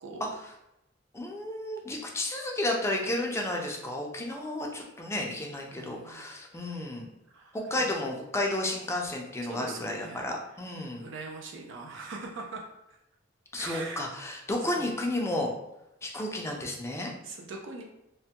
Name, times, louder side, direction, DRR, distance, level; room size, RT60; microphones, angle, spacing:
voice 1, 1.1-7.1 7.5-11.0 13.5-15.5 16.0-17.1, left 1 dB, 15° left, 1 dB, 0.4 m, -32 dB
voice 2, 5.7-6.3 6.6-6.8 7.3-7.9 9.5-10.3 11.0-13.0 13.6-14.0 14.8-15.0 17.2-17.8, right 3 dB, 65° right, 1 dB, 0.4 m, -42 dB
3.2 x 2.1 x 2.8 m, 0.86 s
head